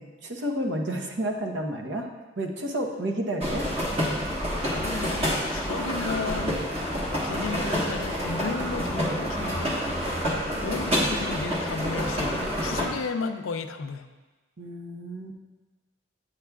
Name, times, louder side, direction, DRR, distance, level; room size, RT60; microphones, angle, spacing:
voice 1, 0.0-2.1 2.4-3.7 14.6-15.3, right 1 dB, 65° right, 2 dB, 0.9 m, -30 dB
sound 1, 3.4-12.9, equal, 30° right, 1.2 m, -28 dB
voice 2, 4.7-6.6 7.2-14.1, left 4 dB, 90° left, 8 dB, 0.5 m, -34 dB
8.4 x 8.2 x 2.3 m, 1.3 s
head